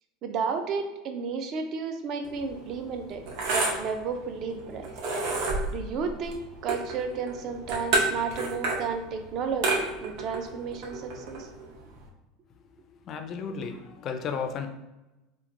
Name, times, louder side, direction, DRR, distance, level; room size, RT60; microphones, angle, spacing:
voice 1, 0.2-3.2 3.5-4.9 5.7-11.5, right 5 dB, 40° right, 6 dB, 0.4 m, -32 dB
sound 1, 2.2-12.1, right 3 dB, 60° right, 0.8 m, -31 dB
voice 2, 13.1-14.7, left 6 dB, 35° left, 6 dB, 0.3 m, -33 dB
2.9 x 2.1 x 3.7 m, 1.0 s
cardioid pair, 160°, 0 cm